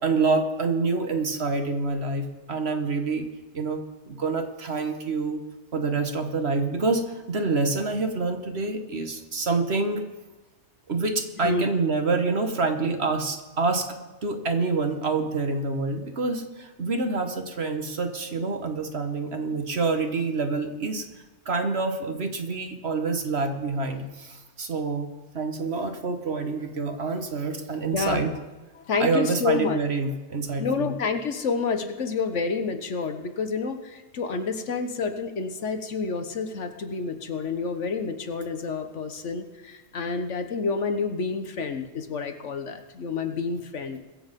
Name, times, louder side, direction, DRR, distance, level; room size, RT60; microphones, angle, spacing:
voice 1, 0.0-3.3 3.5-5.4 5.7-10.0 10.9-13.9 14.2-21.0 21.4-25.1 25.3-28.3 29.0-30.9, right 3 dB, 55° right, 6 dB, 1.6 m, -27 dB
voice 2, 27.9-28.2 28.9-29.8 30.6-44.0, left 4 dB, 65° left, 8 dB, 1.4 m, -29 dB
21.0 x 7.9 x 5.2 m, 1.1 s
omnidirectional pair, 1.3 m